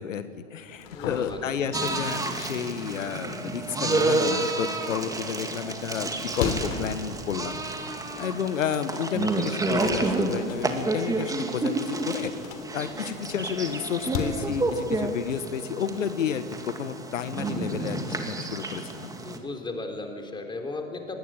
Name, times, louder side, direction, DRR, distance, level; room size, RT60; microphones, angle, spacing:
voice 1, 0.0-7.6 8.2-12.3 12.7-19.1, left 8 dB, 75° left, 11 dB, 1.4 m, -31 dB
sound 1, 0.7-4.3 4.7-8.2 8.6-8.7 9.3-14.3, left 6 dB, 50° left, 3.6 m, -37 dB
voice 2, 0.9-1.6 19.2-21.2, left 2 dB, 10° left, 4 dB, 3.6 m, -36 dB
sound 2, 1.7-19.4, right 2 dB, 10° right, 2.2 m, -30 dB
24.5 x 19.0 x 9.0 m, 2.5 s
hypercardioid pair, 110°, 38 cm